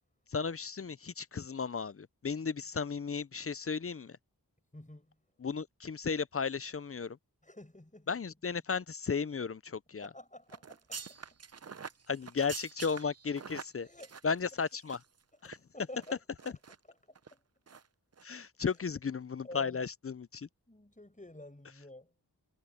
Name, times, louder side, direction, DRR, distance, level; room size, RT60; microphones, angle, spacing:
voice 1, 0.3-4.2 5.4-7.2 8.1-10.1 12.1-13.9 14.2-15.0 15.4-15.6 18.2-20.5, left 5 dB, 35° left, 0.5 m, -35 dB
voice 2, 4.7-5.2 7.4-8.2 10.0-11.4 13.8-14.2 15.3-17.4 19.4-19.8 20.7-22.1, left 1 dB, 20° left, 7.2 m, -51 dB
sound 1, 10.5-15.2 15.4-15.6 16.0-16.8 17.1-17.3 17.7-17.9 18.1-18.2, right 6 dB, 40° right, 0.6 m, -46 dB
wide cardioid pair, 70°, 39 cm